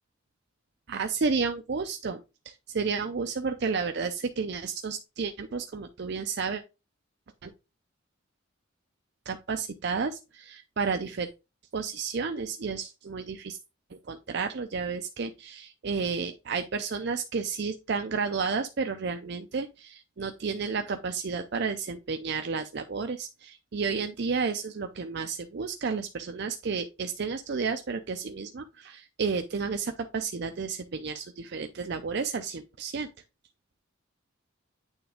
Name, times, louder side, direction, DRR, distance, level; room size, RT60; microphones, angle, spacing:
voice 1, 0.9-2.2 2.5-6.6 7.4-7.5 9.3-11.3 11.7-13.6 13.9-33.1, right 5 dB, 55° right, 0.5 m, -31 dB
8.9 x 3.4 x 3.6 m
head